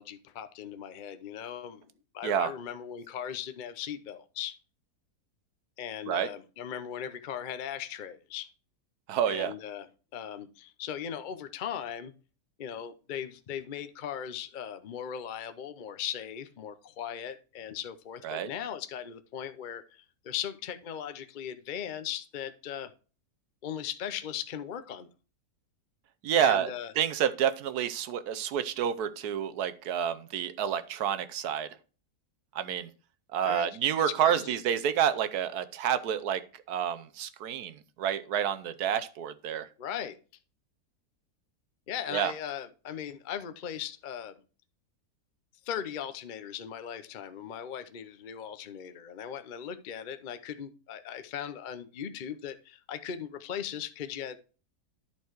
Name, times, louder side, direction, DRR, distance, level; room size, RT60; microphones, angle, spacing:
voice 1, 0.0-1.9 2.1-4.6 5.8-8.5 9.3-9.9 10.1-12.1 12.6-22.9 23.6-25.1 26.4-26.9 33.4-33.7 34.0-34.5 39.8-40.2 41.9-44.3 45.6-54.4, left 9 dB, 50° left, 0.6 m, -38 dB
voice 2, 9.1-9.5 18.2-18.5 26.2-26.7 27.0-31.7 32.5-32.9 33.3-39.7 42.1-42.3, right 9 dB, 70° right, 1.3 m, -29 dB
10.5 x 4.5 x 4.6 m
omnidirectional pair, 1.7 m